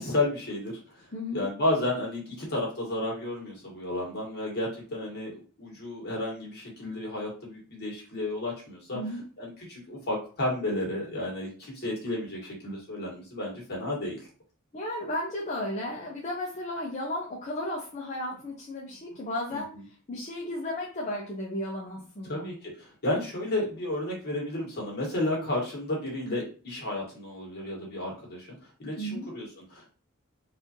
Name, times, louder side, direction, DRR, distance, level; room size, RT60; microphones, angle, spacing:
voice 1, 0.0-1.0 1.3-9.0 9.4-14.3 19.5-19.6 22.2-29.9, left 1 dB, 50° left, -3 dB, 1.6 m, -32 dB
voice 2, 1.1-1.5 8.9-9.2 14.7-19.7 20.1-22.5 29.0-29.3, left 1 dB, 35° left, -3 dB, 0.6 m, -34 dB
4.1 x 2.6 x 2.8 m, 0.38 s
head